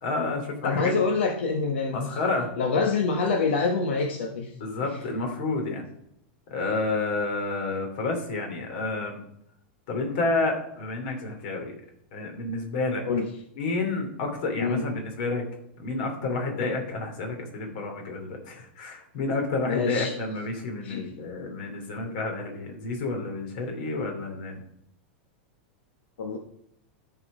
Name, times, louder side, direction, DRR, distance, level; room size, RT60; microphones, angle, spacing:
voice 1, 0.0-0.9 1.9-2.5 4.6-5.8 6.5-9.2 9.9-11.7 12.1-13.0 13.6-15.4 15.8-24.6, left 3 dB, 55° left, 2 dB, 3.1 m, -30 dB
voice 2, 0.6-2.1 2.6-4.5 4.8-4.9 13.1-13.3 14.6-14.8 19.7-20.1 20.8-21.1 26.2-26.4, left 4 dB, 80° left, 3 dB, 1.3 m, -26 dB
13.5 x 4.8 x 5.0 m, 0.71 s
supercardioid pair, 160°, 6 cm